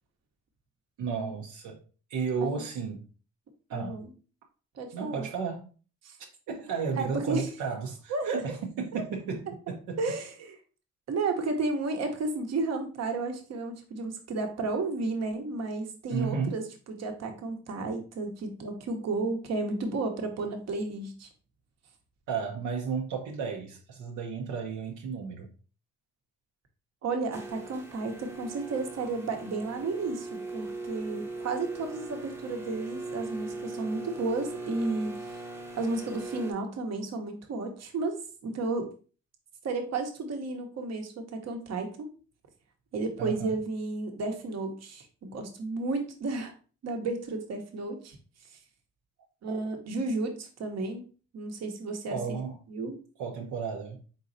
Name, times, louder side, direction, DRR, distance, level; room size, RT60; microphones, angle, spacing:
voice 1, 1.0-1.8 2.1-3.0 3.7-4.0 4.9-5.7 6.5-10.0 16.1-16.6 22.3-25.5 43.2-43.6 52.1-52.6 53.2-54.0, right 5 dB, 80° right, 0.7 m, -33 dB
voice 2, 3.7-4.1 4.7-5.3 6.0-6.2 6.9-7.5 8.1-8.4 8.9-9.0 10.0-10.6 11.1-16.6 16.9-21.3 27.0-35.4 35.8-38.9 39.6-42.1 42.9-46.5 46.8-48.2 49.4-51.0 51.3-52.2 52.7-53.0, right 3 dB, 60° right, 1.0 m, -32 dB
sound 1, 27.3-36.5, right 3 dB, 10° right, 0.7 m, -39 dB
4.0 x 3.9 x 2.6 m
cardioid pair, 90°, 30 cm